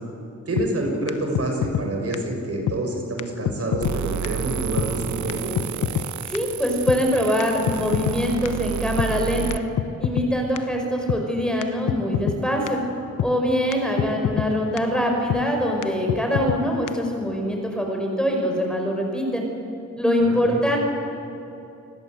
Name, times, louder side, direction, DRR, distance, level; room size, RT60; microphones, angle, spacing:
voice 1, 0.5-5.5 14.1-14.3 20.2-20.6, right 1 dB, 50° right, 2 dB, 6.3 m, -27 dB
sound 1, 0.6-0.7 1.1-1.2 1.3-1.9 2.1-2.2 2.7-2.8 3.2-3.3 3.4-4.0 4.2-4.3 4.8-4.9 5.3-5.4 5.6-6.1 6.3-6.4 6.9-7.0 7.4-8.2 8.4-8.5 9.0-9.1 9.5-9.6 9.8-10.3 10.6-10.7 11.1-11.2 11.6-11.7 11.9-12.4 12.7-12.8 13.2-13.3 13.7-13.8 14.0-14.5 14.8-14.9 15.3-15.4 15.8-15.9 16.1-16.6 16.9-17.0, left 10 dB, 85° left, 1.0 m, -25 dB
sound 2, 3.8-9.6, right 9 dB, 70° right, 1.0 m, -31 dB
voice 2, 6.3-9.6 10.0-12.8 13.2-19.5 20.0-20.8, equal, 5° left, 1 dB, 5.7 m, -23 dB
29.0 x 20.5 x 8.0 m, 2.9 s
cardioid pair, 85°, 30 cm